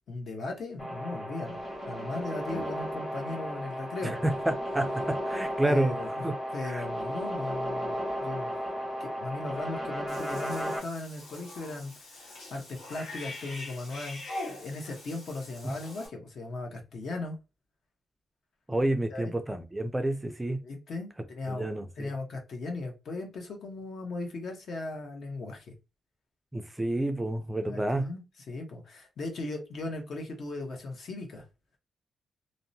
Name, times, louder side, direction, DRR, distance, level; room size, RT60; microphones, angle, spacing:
voice 1, 0.1-1.6 1.9-4.2 5.6-6.2 6.5-8.5 9.0-14.2 14.6-17.4 19.1-19.3 20.6-21.7 22.0-25.7 27.7-31.4, left 2 dB, 60° left, 0.8 m, -37 dB
sound 1, 0.8-10.8, equal, 30° left, 1.3 m, -34 dB
voice 2, 4.0-6.0 6.2-6.3 6.6-6.8 15.6-15.7 18.7-20.6 21.5-22.1 26.5-28.1, right 1 dB, 10° right, 0.3 m, -29 dB
Cat / Bathtub (filling or washing), 10.1-16.1, left 2 dB, 85° left, 1.1 m, -43 dB
2.7 x 2.1 x 2.6 m
wide cardioid pair, 140°, 0 cm